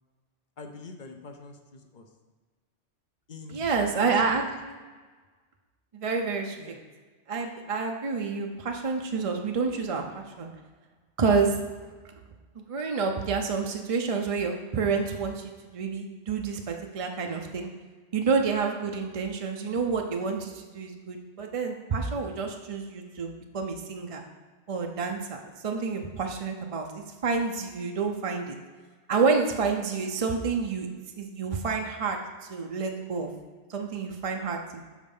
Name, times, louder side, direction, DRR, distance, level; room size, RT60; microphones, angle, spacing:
voice 1, 0.6-2.1 3.3-4.5 6.6-6.8, left 3 dB, 50° left, 5 dB, 0.7 m, -45 dB
voice 2, 3.5-4.7 5.9-6.6 7.3-10.5 11.2-11.6 12.6-17.7 18.1-24.2 24.7-28.6 29.1-30.9 31.2-33.3 33.7-34.8, right 5 dB, 40° right, 3 dB, 0.5 m, -29 dB
7.3 x 4.1 x 5.4 m, 1.4 s
omnidirectional pair, 1.2 m